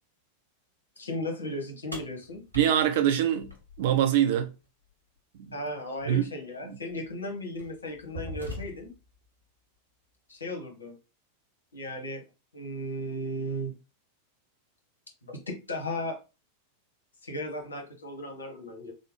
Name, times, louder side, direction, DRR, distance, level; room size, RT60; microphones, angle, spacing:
voice 1, 1.0-2.4 5.5-8.9 10.3-10.9 11.7-12.2 12.5-13.7 15.2-16.2 17.2-18.9, left 1 dB, 75° left, 1.0 m, -36 dB
sound 1, 1.9-4.1 6.0-6.1 6.9-7.1 7.6-9.1, equal, 90° right, 0.9 m, -41 dB
voice 2, 2.5-3.5 3.8-4.5 5.4-5.5 6.1-6.2 6.6-6.8, right 10 dB, 50° right, 0.5 m, -24 dB
3.2 x 2.1 x 3.2 m
figure-of-eight pair, 90°, 0 cm